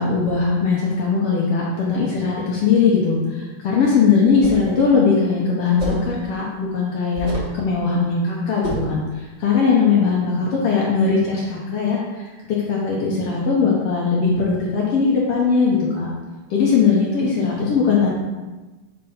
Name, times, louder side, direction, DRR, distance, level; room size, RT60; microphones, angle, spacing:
voice 1, 0.0-12.2 12.7-16.1 16.5-18.1, left 5 dB, 75° left, -4 dB, 1.3 m, -19 dB
sound 1, 4.3-4.7 5.8-6.1 7.1-7.6 8.6-9.0, equal, 80° right, 0.6 m, -28 dB
5.3 x 3.3 x 5.5 m, 1.2 s
omnidirectional pair, 3.7 m